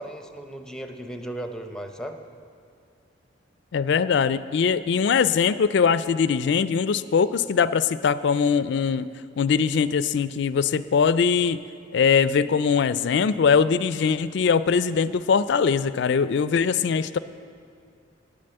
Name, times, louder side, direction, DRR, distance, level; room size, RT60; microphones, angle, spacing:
voice 1, 0.0-2.2, right 1 dB, 5° left, 6 dB, 0.7 m, -36 dB
voice 2, 3.7-9.1 9.4-11.6 11.9-17.2, left 6 dB, 65° left, 15 dB, 0.4 m, -21 dB
10.0 x 8.9 x 7.8 m, 2.3 s
head